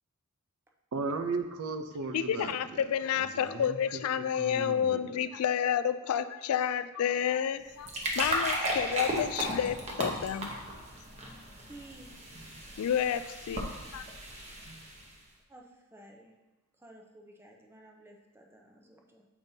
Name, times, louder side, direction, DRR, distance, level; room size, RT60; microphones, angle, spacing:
voice 1, 0.9-2.6 3.2-4.0 4.4-5.2, right 3 dB, 85° right, 6 dB, 0.5 m, -36 dB
voice 2, 2.1-7.9 8.2-10.6 12.8-13.6 13.9-14.1, left 8 dB, 80° left, 13 dB, 0.3 m, -30 dB
sound 1, 7.6-15.1, right 1 dB, 30° right, 0.9 m, -35 dB
voice 3, 11.6-12.1 15.5-16.3 16.8-19.3, right 1 dB, 10° right, 1 dB, 0.6 m, -53 dB
7.2 x 5.2 x 2.7 m, 1.1 s
head